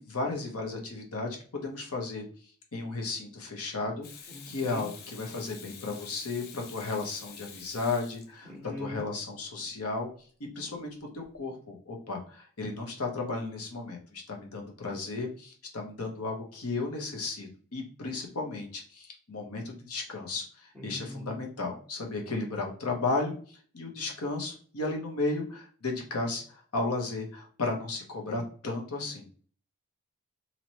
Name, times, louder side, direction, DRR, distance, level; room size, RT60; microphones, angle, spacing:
voice 1, 0.0-2.2 2.7-4.1 4.4-10.1 10.4-29.3, left 3 dB, 80° left, 1 dB, 0.9 m, -34 dB
Water tap faucet / Sink (filling or washing), 4.0-8.8 11.2-11.4, left 6 dB, 45° left, 0.5 m, -48 dB
voice 2, 4.3-4.9 8.5-9.0 20.8-21.3, left 1 dB, 5° left, -8 dB, 0.8 m, -41 dB
3.0 x 2.8 x 2.7 m, 0.43 s
head